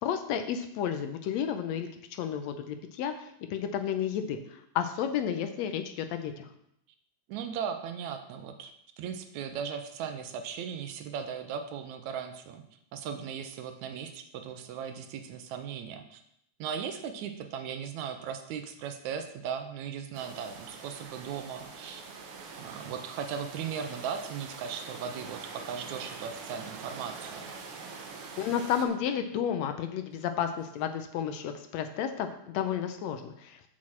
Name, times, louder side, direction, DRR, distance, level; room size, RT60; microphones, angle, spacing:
voice 1, 0.0-3.1 3.5-4.4 4.7-6.5 28.4-32.3 32.5-33.6, left 8 dB, 75° left, 8 dB, 1.8 m, -31 dB
voice 2, 7.3-8.7 9.0-12.6 12.9-16.2 16.6-22.0 22.6-27.5, right 7 dB, 80° right, 7 dB, 2.0 m, -37 dB
sound 1, 20.1-28.8, right 4 dB, 60° right, 1.7 m, -44 dB
6.4 x 6.2 x 7.4 m, 0.75 s
omnidirectional pair, 3.4 m